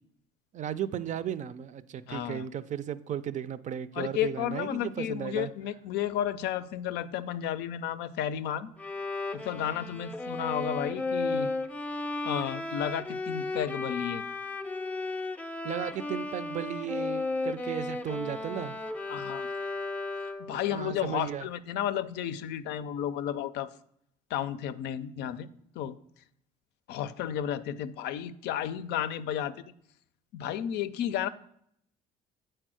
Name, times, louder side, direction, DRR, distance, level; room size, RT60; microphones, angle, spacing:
voice 1, 0.5-5.5 15.6-18.8 19.6-19.7 20.5-21.5, right 10 dB, 45° right, 15 dB, 0.5 m, -35 dB
voice 2, 2.1-2.5 3.9-8.7 9.3-11.5 12.2-14.2 19.1-19.5 20.2-23.7 24.3-25.5 25.8-26.0 26.9-29.7 30.3-31.3, left 10 dB, 80° left, 13 dB, 0.5 m, -32 dB
Bowed string instrument, 8.8-20.6, left 2 dB, 10° left, 0.4 m, -34 dB
7.6 x 4.5 x 6.2 m, 0.70 s
cardioid pair, 110°, 17 cm